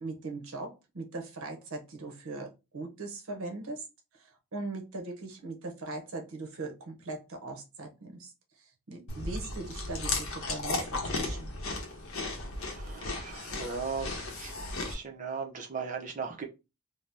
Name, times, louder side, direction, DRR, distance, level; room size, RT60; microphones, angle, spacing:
voice 1, 0.0-3.8 4.5-8.3 8.9-11.5, right 3 dB, 70° right, 0.7 m, -40 dB
Chewing mastication, 9.1-14.9, left 2 dB, 65° left, 0.7 m, -35 dB
voice 2, 12.6-14.5 14.9-16.5, right 5 dB, 35° right, 0.5 m, -38 dB
2.7 x 2.0 x 3.3 m
head